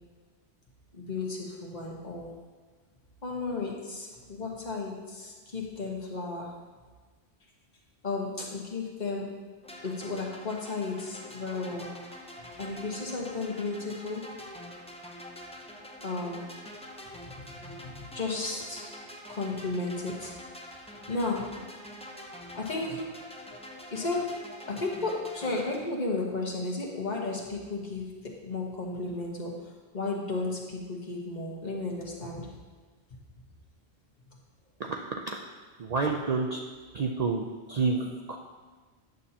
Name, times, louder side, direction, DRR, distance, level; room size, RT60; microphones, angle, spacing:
voice 1, 0.9-2.3 3.2-6.6 8.0-9.3 9.8-12.0 12.6-14.3 16.0-16.4 17.2-18.9 19.3-20.3 20.7-20.8 21.1-21.5 22.5-23.1 23.9-32.5, left 3 dB, 45° left, -3 dB, 1.3 m, -34 dB
sound 1, 9.6-25.8, equal, 5° left, 0.7 m, -45 dB
voice 2, 34.8-35.4 35.8-36.6 36.9-38.4, right 4 dB, 50° right, 1 dB, 0.5 m, -29 dB
9.1 x 7.3 x 2.8 m, 1.4 s
omnidirectional pair, 1.1 m